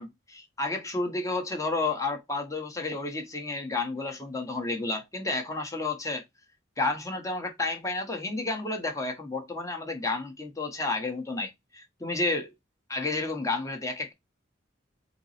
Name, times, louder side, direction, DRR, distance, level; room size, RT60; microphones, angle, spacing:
voice 1, 0.0-6.2 6.8-12.5 12.9-14.1, left 3 dB, 15° left, 1.0 m, -31 dB
4.6 x 2.0 x 3.9 m
head